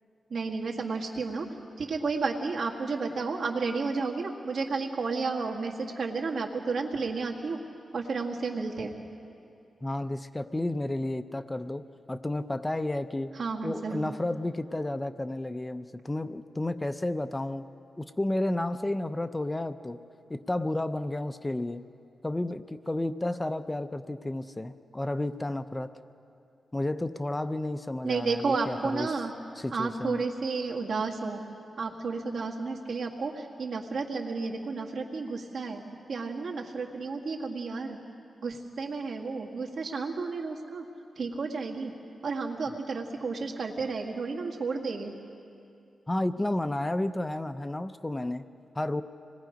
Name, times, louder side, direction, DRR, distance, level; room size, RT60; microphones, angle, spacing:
voice 1, 0.3-1.5 1.8-7.6 7.9-8.9 13.4-14.1 28.0-29.3 29.7-31.4 31.8-35.8 36.1-38.0 38.4-40.8 41.2-41.9 42.2-45.1, right 4 dB, 65° right, 0 dB, 1.9 m, -32 dB
voice 2, 9.8-13.3 13.6-17.6 18.0-20.0 20.3-21.8 22.2-25.9 26.7-29.1 29.6-30.2 46.1-48.5 48.7-49.0, left 1 dB, 15° left, 10 dB, 0.5 m, -32 dB
25.5 x 20.5 x 5.2 m, 2.6 s
wide cardioid pair, 105°, 0 cm